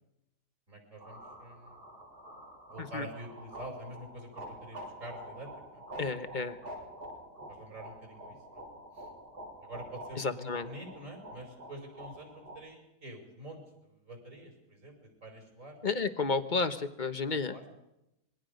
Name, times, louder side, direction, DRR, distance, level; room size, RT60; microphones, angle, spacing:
voice 1, 0.7-1.8 2.7-5.8 7.5-8.6 9.0-9.1 9.6-13.6 14.1-15.9 17.5-17.8, right 1 dB, 50° right, 3 dB, 6.0 m, -47 dB
sound 1, 1.0-12.6, right 1 dB, 65° right, 7.4 m, -47 dB
voice 2, 6.0-6.6 10.2-10.7 15.8-17.5, left 4 dB, 30° left, 9 dB, 1.1 m, -32 dB
26.5 x 22.0 x 5.3 m, 0.86 s
omnidirectional pair, 1.8 m